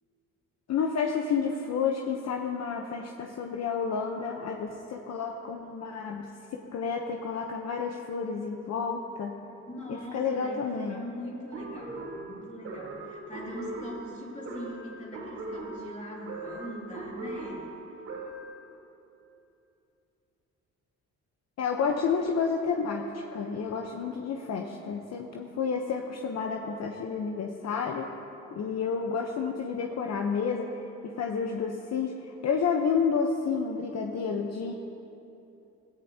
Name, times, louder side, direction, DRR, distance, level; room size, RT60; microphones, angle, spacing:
voice 1, 0.7-6.3 6.5-9.3 9.9-11.0 21.6-28.1 28.5-30.7 31.0-32.2 32.4-34.7, left 5 dB, 60° left, 2 dB, 0.9 m, -30 dB
voice 2, 9.6-17.7, equal, 25° left, -4 dB, 3.4 m, -42 dB
sound 1, 11.5-18.6, right 2 dB, 85° right, 3.5 m, -39 dB
16.5 x 16.5 x 2.9 m, 2.9 s
cardioid pair, 90°, 30 cm